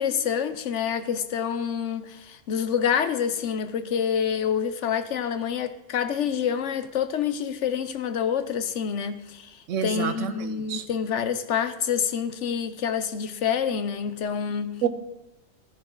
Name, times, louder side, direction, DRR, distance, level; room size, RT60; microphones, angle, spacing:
voice 1, 0.0-14.7, left 7 dB, 65° left, 1.0 m, -27 dB
voice 2, 9.7-10.8 14.8-14.9, right 8 dB, 65° right, 1.2 m, -28 dB
13.5 x 10.0 x 3.8 m
omnidirectional pair, 1.4 m